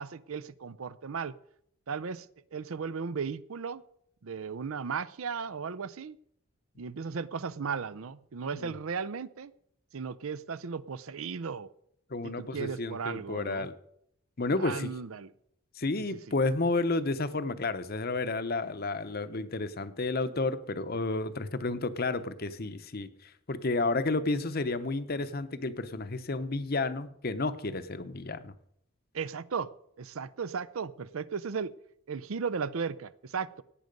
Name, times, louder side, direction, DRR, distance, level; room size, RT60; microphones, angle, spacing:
voice 1, 0.0-1.3 1.9-3.8 4.2-6.2 6.8-9.5 9.9-11.7 12.2-13.7 14.6-15.3 16.1-16.2 29.1-29.7 30.0-31.7 32.1-33.6, right 5 dB, 70° right, 17 dB, 0.5 m, -36 dB
voice 2, 12.1-13.7 14.4-14.9 15.8-28.5, left 3 dB, 45° left, 12 dB, 0.8 m, -31 dB
17.0 x 9.3 x 5.3 m, 0.73 s
head